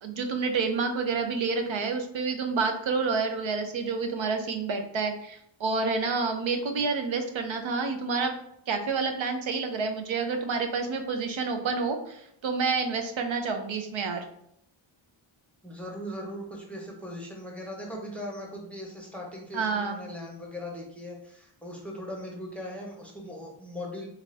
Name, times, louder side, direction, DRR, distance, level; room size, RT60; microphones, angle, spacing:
voice 1, 0.0-8.3 8.7-14.2 19.5-20.1, right 4 dB, 70° right, 5 dB, 0.6 m, -29 dB
voice 2, 15.6-24.1, left 1 dB, 5° left, -1 dB, 0.6 m, -39 dB
3.4 x 2.5 x 3.2 m, 0.70 s
wide cardioid pair, 170°, 49 cm